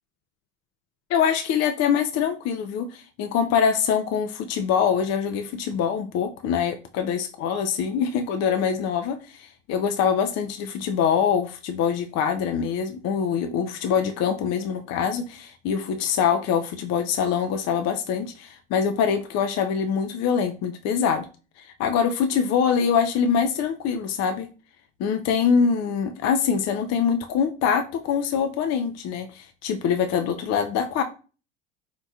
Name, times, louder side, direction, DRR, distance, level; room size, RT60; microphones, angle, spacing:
voice 1, 1.1-21.3 21.6-24.5 25.0-31.0, left 7 dB, 45° left, 0.5 m, -24 dB
4.4 x 2.8 x 2.3 m
hypercardioid pair, 70°, 35 cm